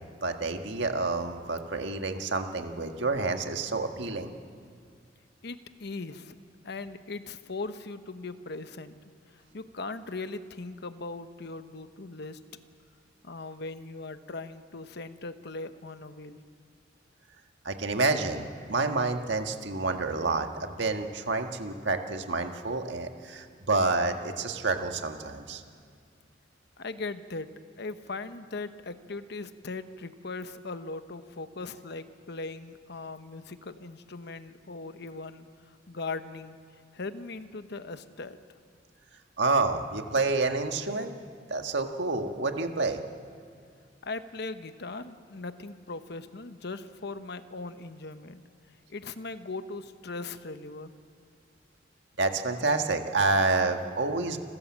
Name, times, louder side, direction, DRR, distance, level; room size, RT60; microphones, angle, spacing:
voice 1, 0.2-4.3 17.6-25.6 39.4-41.1 41.5-43.0 52.2-54.4, right 3 dB, 70° right, 5 dB, 1.7 m, -28 dB
voice 2, 5.4-6.4 6.6-12.4 13.2-16.4 26.8-27.5 27.8-36.6 36.9-38.4 44.0-48.4 48.9-50.9, left 3 dB, 60° left, 11 dB, 1.0 m, -39 dB
29.5 x 14.0 x 7.5 m, 2.2 s
head